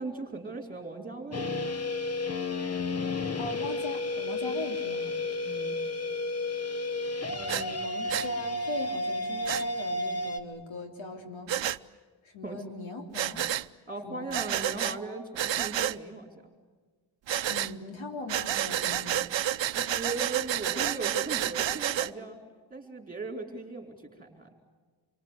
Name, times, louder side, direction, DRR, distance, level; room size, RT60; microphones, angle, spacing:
voice 1, 0.0-1.5 5.4-5.8 12.4-12.6 13.9-16.5 19.6-22.4 22.7-24.5, right 3 dB, 20° right, 2 dB, 4.6 m, -38 dB
sound 1, 1.3-10.4, left 2 dB, 35° left, 1.3 m, -32 dB
voice 2, 3.3-5.2 7.3-11.5 12.2-13.4 14.0-14.3 17.5-19.2, left 2 dB, 80° left, 3 dB, 3.6 m, -40 dB
Breathing, 7.5-7.6 8.1-8.3 9.4-9.6 11.5-11.8 13.1-13.7 14.3-15.0 15.3-16.0 17.3-17.7 18.3-22.1, right 11 dB, 70° right, 0.8 m, -30 dB
28.0 x 24.0 x 8.4 m, 1.4 s
wide cardioid pair, 155°, 46 cm